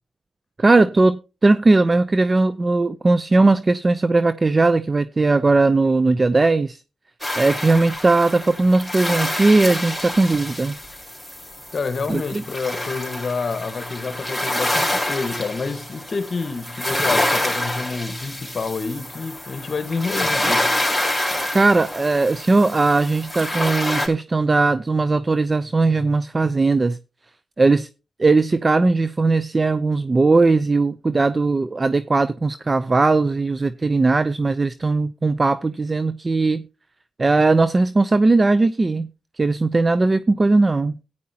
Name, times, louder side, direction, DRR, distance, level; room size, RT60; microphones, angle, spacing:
voice 1, 0.6-6.8 7.4-10.8 12.1-12.4 21.5-27.0 27.6-27.9 28.2-36.6 37.2-39.1 39.4-40.9, right 3 dB, 35° right, 0.6 m, -18 dB
sound 1, 7.2-24.1, left 1 dB, 5° right, 4.2 m, -27 dB
voice 2, 11.7-20.7, left 4 dB, 55° left, 1.4 m, -28 dB
14.0 x 9.9 x 2.9 m
cardioid pair, 60°, 0 cm